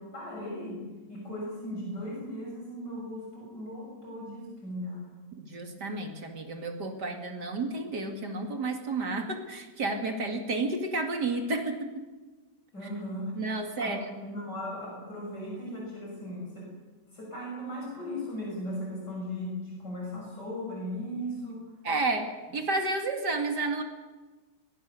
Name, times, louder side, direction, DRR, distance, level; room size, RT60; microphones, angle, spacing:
voice 1, 0.0-5.1 12.7-16.7 17.1-21.7, left 1 dB, 70° left, -2 dB, 7.0 m, -37 dB
voice 2, 5.4-11.9 13.3-14.0 21.8-22.3 22.5-23.8, right 3 dB, 70° right, 4 dB, 3.0 m, -31 dB
22.0 x 21.0 x 6.8 m, 1.2 s
omnidirectional pair, 1.9 m